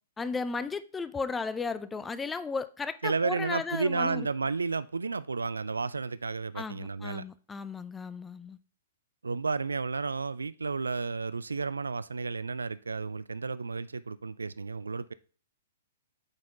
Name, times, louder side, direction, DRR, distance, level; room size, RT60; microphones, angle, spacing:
voice 1, 0.2-4.2 6.5-8.6, left 4 dB, 10° left, 0.4 m, -35 dB
voice 2, 3.0-7.2 9.2-15.1, right 4 dB, 75° right, 0.3 m, -32 dB
8.8 x 4.2 x 4.0 m
figure-of-eight pair, 110°, 0 cm